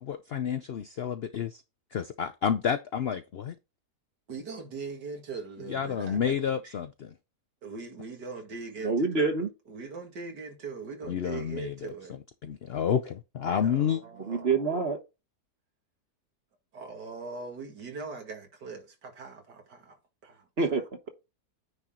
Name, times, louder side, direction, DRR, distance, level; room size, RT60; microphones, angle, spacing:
voice 1, 0.0-1.6 1.9-3.5 5.7-7.1 11.1-11.9 12.4-14.0, left 8 dB, 75° left, 0.5 m, -30 dB
voice 2, 4.3-6.4 6.6-6.8 7.6-9.3 9.7-12.2 13.5-14.7 16.7-20.5, right 4 dB, 90° right, 2.7 m, -41 dB
voice 3, 8.8-9.5 14.3-15.0 20.6-21.1, right 4 dB, 40° right, 1.3 m, -27 dB
9.7 x 4.4 x 3.8 m
omnidirectional pair, 1.7 m